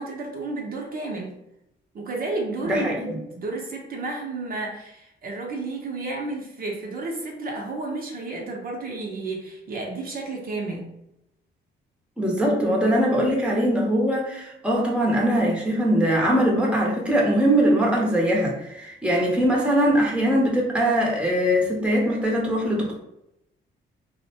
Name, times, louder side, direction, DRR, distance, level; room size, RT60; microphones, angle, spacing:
voice 1, 0.0-1.3 1.9-10.9, right 3 dB, 50° right, 0 dB, 0.6 m, -32 dB
voice 2, 2.6-3.2 12.2-23.0, equal, 5° right, -2 dB, 0.7 m, -21 dB
2.5 x 2.1 x 2.7 m, 0.83 s
cardioid pair, 90°, 20 cm